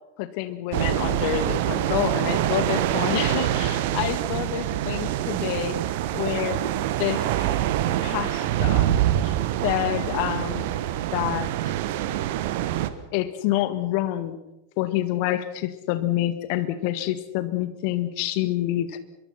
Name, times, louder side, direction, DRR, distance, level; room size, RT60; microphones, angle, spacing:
voice 1, 0.2-5.8 6.1-6.6 7.0-7.5 8.0-8.9 9.2-9.3 9.6-10.6 11.1-11.7 13.1-14.4 14.8-19.0, left 14 dB, 45° left, 11 dB, 1.9 m, -27 dB
sound 1, 0.7-12.9, right 12 dB, 50° right, 1.4 m, -25 dB
24.5 x 23.0 x 5.9 m, 0.94 s
figure-of-eight pair, 90°, 0 cm